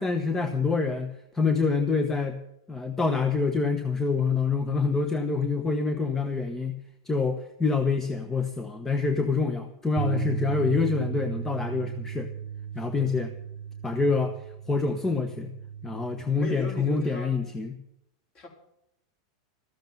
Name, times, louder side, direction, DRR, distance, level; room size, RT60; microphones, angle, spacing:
voice 1, 0.0-2.4 2.7-6.8 7.1-12.3 12.7-13.3 13.8-14.3 14.7-15.5 15.8-17.8, left 4 dB, 10° left, 7 dB, 1.1 m, -26 dB
sound 1, 10.0-16.2, right 8 dB, 55° right, 0.8 m, -35 dB
voice 2, 12.8-13.1 16.4-17.4 18.3-18.5, left 2 dB, 35° left, 2 dB, 4.2 m, -38 dB
13.5 x 7.9 x 9.3 m, 0.79 s
supercardioid pair, 130°, 3 cm